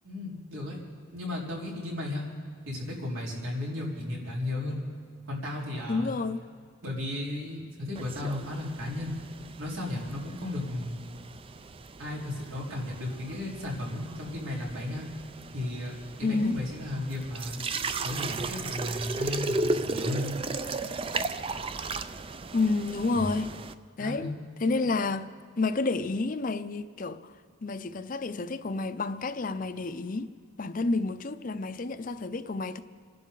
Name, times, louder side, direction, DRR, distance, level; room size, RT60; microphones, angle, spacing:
voice 1, 0.0-0.8 1.1-2.3 2.7-4.8 5.3-6.2 6.8-9.2 9.6-11.0 12.0-15.1 15.5-17.6 18.0-20.4 23.1-23.3 24.0-24.4, left 1 dB, 85° right, 4.0 m, -34 dB
voice 2, 5.9-6.4 16.2-16.6 22.5-23.5 24.0-24.3 24.6-25.3 25.6-27.2 27.6-30.3 30.6-32.8, left 3 dB, 40° left, 0.5 m, -29 dB
sound 1, 7.9-23.7, right 3 dB, 25° right, 0.4 m, -36 dB
28.5 x 11.5 x 3.9 m
head